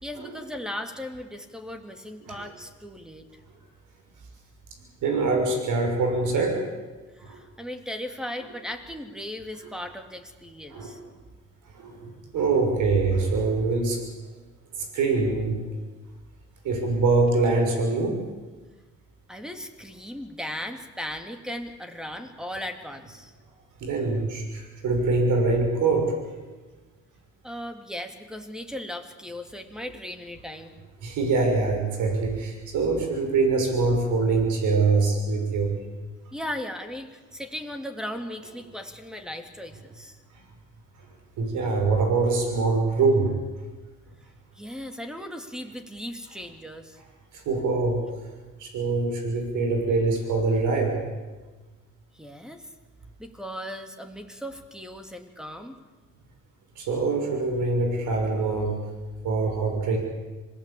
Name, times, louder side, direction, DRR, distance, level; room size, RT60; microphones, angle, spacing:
voice 1, 0.0-3.3 7.1-11.0 19.3-23.3 27.4-30.7 36.3-40.2 44.5-47.0 52.1-52.7 53.2-55.8, left 1 dB, ahead, 6 dB, 3.0 m, -37 dB
voice 2, 5.0-6.6 7.2-7.4 10.7-10.9 11.7-14.0 14.7-15.6 16.6-18.2 23.8-26.2 31.0-35.7 41.4-43.4 47.3-48.0 48.6-51.0 56.8-58.8 59.2-60.0, right 3 dB, 85° right, 4 dB, 6.4 m, -24 dB
26.0 x 18.5 x 8.8 m, 1.2 s
cardioid pair, 90°, 30 cm